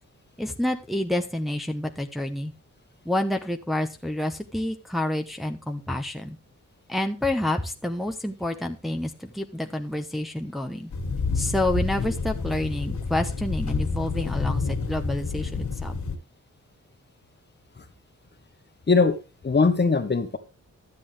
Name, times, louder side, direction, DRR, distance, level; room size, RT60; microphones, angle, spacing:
voice 1, 0.4-2.5 3.0-6.4 6.9-10.9 11.3-16.0, left 1 dB, ahead, 4 dB, 1.0 m, -28 dB
sound 1, 10.9-16.2, left 4 dB, 80° left, 2.2 m, -29 dB
voice 2, 18.9-19.2 19.4-20.4, left 4 dB, 35° left, 9 dB, 1.3 m, -21 dB
12.5 x 8.5 x 3.5 m, 0.30 s
wide cardioid pair, 120°, 30 cm